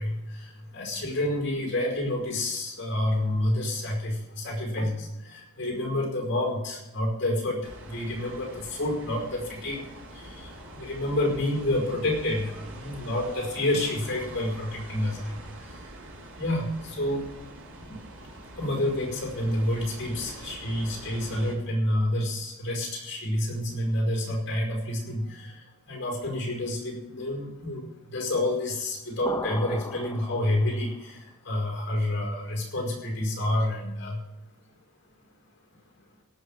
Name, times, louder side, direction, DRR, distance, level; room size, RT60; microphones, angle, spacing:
voice 1, 0.0-15.8 16.4-17.3 17.8-18.0 18.4-34.2, left 1 dB, 50° left, 0 dB, 5.2 m, -29 dB
sound 1, 7.6-21.5, right 1 dB, 65° right, 2.9 m, -44 dB
sound 2, 29.3-31.0, left 2 dB, 15° left, 0.6 m, -36 dB
17.5 x 5.9 x 8.9 m, 0.93 s
head